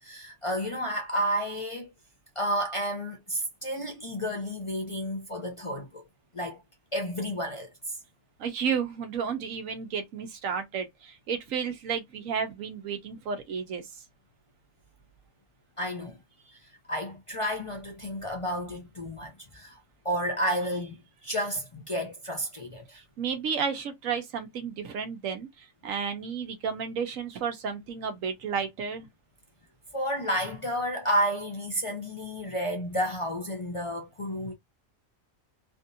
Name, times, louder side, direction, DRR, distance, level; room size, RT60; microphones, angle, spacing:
voice 1, 0.0-1.9 2.4-6.0 6.3-6.6 6.9-8.0 15.8-16.2 16.5-16.6 16.9-19.8 20.0-23.0 29.9-34.5, equal, 35° left, 0.5 m, -31 dB
voice 2, 8.4-14.0 22.9-29.1, right 6 dB, 90° right, 1.2 m, -32 dB
3.4 x 2.6 x 2.7 m
omnidirectional pair, 1.3 m